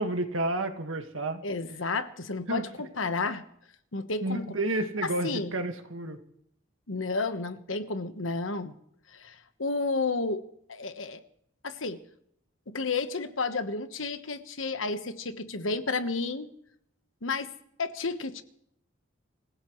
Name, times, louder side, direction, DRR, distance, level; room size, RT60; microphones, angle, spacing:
voice 1, 0.0-1.4 2.5-2.9 4.2-6.2, right 2 dB, 85° right, 6 dB, 1.8 m, -31 dB
voice 2, 1.4-3.4 3.9-4.5 5.2-5.5 6.9-8.7 9.1-10.4 10.7-11.2 11.6-12.0 12.7-16.5 17.2-17.5 17.8-18.4, left 3 dB, 80° left, 10 dB, 1.3 m, -31 dB
26.0 x 16.0 x 3.2 m, 0.72 s
head